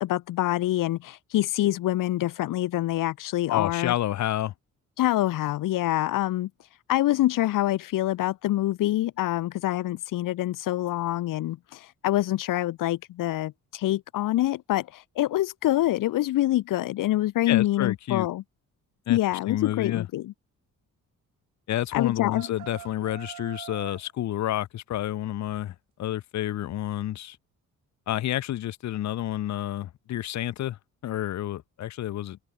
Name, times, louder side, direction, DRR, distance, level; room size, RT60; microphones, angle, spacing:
voice 1, 0.0-3.9 5.0-6.5 6.9-18.4 19.1-20.3 21.9-22.5, left 15 dB, 85° left, 1.0 m, -26 dB
voice 2, 3.5-4.5 17.5-18.3 19.1-19.2 19.5-20.0 21.7-27.4 28.1-32.4, left 13 dB, 60° left, 1.1 m, -29 dB
sound 1, 21.9-24.1, right 13 dB, 90° right, 4.0 m, -43 dB
cardioid pair, 170°, 32 cm